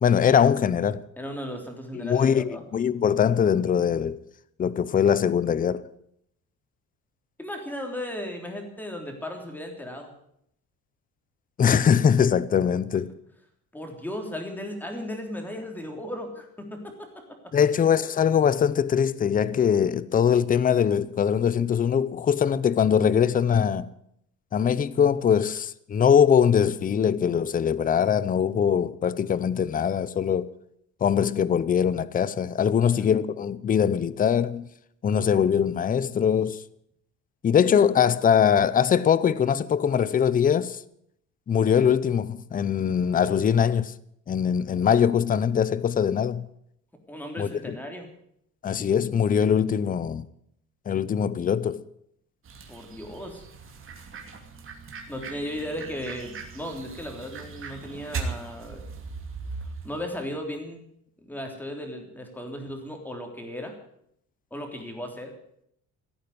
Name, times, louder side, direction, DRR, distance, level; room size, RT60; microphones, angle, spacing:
voice 1, 0.0-1.0 1.9-4.2 4.6-5.8 11.6-13.1 17.5-23.9 24.5-30.5 31.0-34.7 35.0-36.6 37.4-40.8 41.5-43.9 44.3-46.5 47.4-47.8 48.6-50.3 50.9-51.8, left 8 dB, 25° left, 0.6 m, -22 dB
voice 2, 1.2-2.6 7.4-10.1 13.7-17.2 32.7-33.1 44.8-45.0 47.1-48.1 52.7-53.4 55.1-58.8 59.8-60.8 61.2-63.7 64.5-65.3, left 1 dB, 5° left, 3.4 m, -36 dB
sound 1, 52.4-60.1, right 4 dB, 40° right, 2.8 m, -39 dB
16.0 x 9.1 x 9.6 m
cardioid pair, 145°, 32 cm